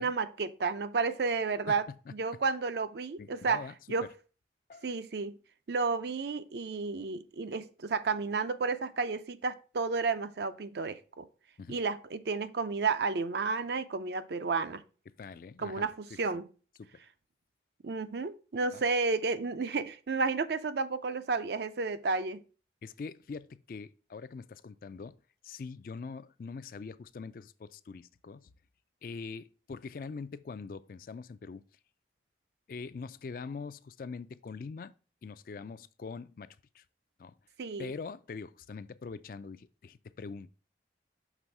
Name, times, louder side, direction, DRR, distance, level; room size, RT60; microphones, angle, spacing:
voice 1, 0.0-1.9 2.1-3.6 3.9-4.1 4.8-5.4 5.7-11.3 11.7-14.8 15.6-16.4 17.8-22.4 37.6-37.9, right 4 dB, 65° right, 0.5 m, -32 dB
voice 2, 3.2-3.7 4.0-4.1 4.7-4.9 11.6-11.8 15.2-15.9 16.8-16.9 18.7-18.8 22.8-25.2 25.4-28.5 29.0-31.7 32.7-34.9 35.2-36.8 37.2-37.3 37.8-40.5, left 4 dB, 50° left, 0.3 m, -43 dB
6.1 x 3.5 x 5.3 m
head